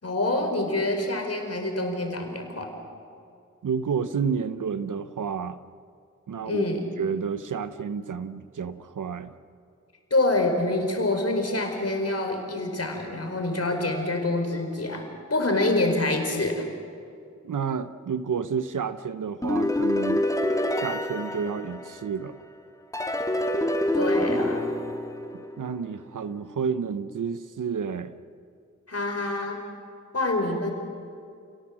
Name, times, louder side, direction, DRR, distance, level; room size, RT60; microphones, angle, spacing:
voice 1, 0.0-2.7 6.4-6.8 10.1-16.7 23.9-24.7 28.9-29.6 30.1-30.7, left 2 dB, 50° left, 4 dB, 4.7 m, -26 dB
voice 2, 3.6-5.6 6.3-6.6 7.0-9.3 17.4-20.3 20.7-22.4 25.3-28.1 30.5-30.6, right 6 dB, 80° right, 13 dB, 0.8 m, -30 dB
sound 1, 19.4-22.3 22.9-25.8, left 1 dB, 10° left, 2.2 m, -26 dB
29.0 x 17.5 x 7.5 m, 2.4 s
cardioid pair, 45°, 31 cm